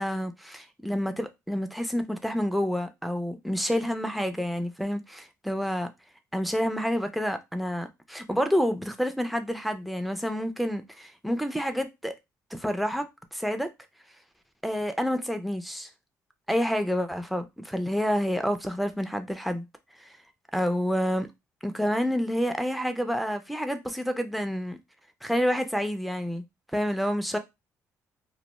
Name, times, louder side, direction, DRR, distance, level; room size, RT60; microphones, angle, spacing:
voice 1, 0.0-5.9 6.3-12.1 12.5-13.0 13.3-13.7 14.6-15.9 16.5-19.6 20.0-20.1 20.5-21.3 21.6-24.8 25.2-26.4 26.7-27.4, equal, ahead, 0.4 m, -28 dB
2.2 x 2.2 x 2.9 m
cardioid pair, 115°, 6 cm